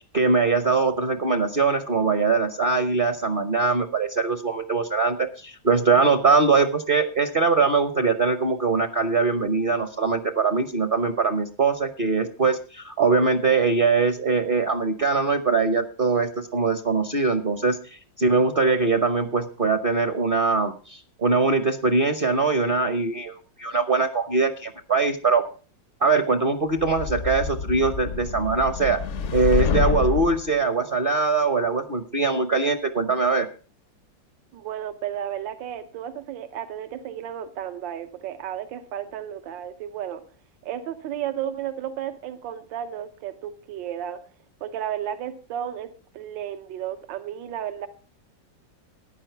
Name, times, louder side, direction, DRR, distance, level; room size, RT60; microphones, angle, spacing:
voice 1, 0.0-25.4 26.0-29.0 29.3-33.5, right 4 dB, 40° right, 9 dB, 0.8 m, -22 dB
sound 1, 26.8-30.4, left 6 dB, 60° left, 0.8 m, -27 dB
voice 2, 34.5-40.2 40.6-44.2 44.6-47.9, right 10 dB, 80° right, 9 dB, 1.6 m, -33 dB
14.0 x 9.9 x 4.5 m, 0.40 s
omnidirectional pair, 2.0 m